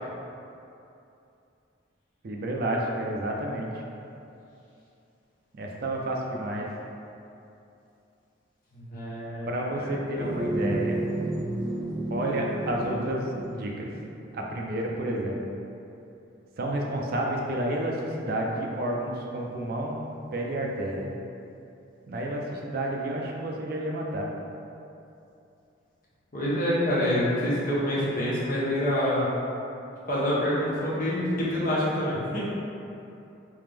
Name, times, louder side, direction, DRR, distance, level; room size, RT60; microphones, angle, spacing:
voice 1, 2.2-3.7 5.6-6.7 9.5-11.1 12.1-13.9 14.3-15.4 16.6-20.0 20.3-21.1 22.1-24.3, right 1 dB, 50° right, -1 dB, 0.4 m, -30 dB
voice 2, 8.7-10.2 26.3-29.3 30.1-32.4, left 1 dB, 45° left, -8 dB, 0.9 m, -27 dB
sound 1, 10.1-14.8, right 1 dB, 70° right, 1.3 m, -32 dB
3.5 x 2.8 x 3.3 m, 2.7 s
head